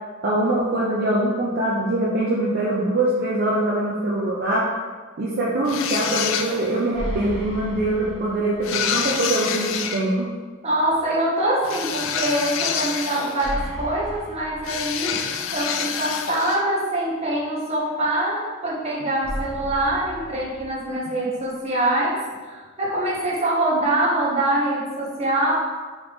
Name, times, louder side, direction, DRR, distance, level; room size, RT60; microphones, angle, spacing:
voice 1, 0.2-4.7 5.2-10.3, right 1 dB, 50° right, -5 dB, 0.5 m, -23 dB
sound 1, 5.7-6.8 8.6-10.0 11.6-13.7 14.6-16.7, left 7 dB, 65° left, 0.3 m, -27 dB
sound 2, 6.9-9.0 9.3-9.4 13.4-15.4 19.2-21.2, equal, 20° left, 0.9 m, -35 dB
voice 2, 10.6-15.2 15.5-22.2 22.4-25.5, right 1 dB, 30° right, -5 dB, 0.8 m, -24 dB
3.8 x 3.2 x 3.5 m, 1.4 s
head